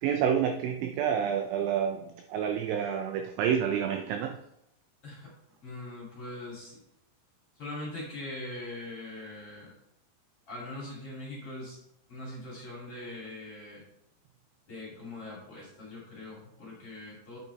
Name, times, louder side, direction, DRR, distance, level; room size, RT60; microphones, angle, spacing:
voice 1, 0.0-4.4, right 8 dB, 85° right, 5 dB, 2.5 m, -29 dB
voice 2, 5.0-5.3 5.6-6.8 7.6-9.7 10.5-11.8 12.1-13.8 14.7-17.4, left 2 dB, 35° left, -6 dB, 2.9 m, -41 dB
9.1 x 6.1 x 4.0 m, 0.83 s
omnidirectional pair, 5.6 m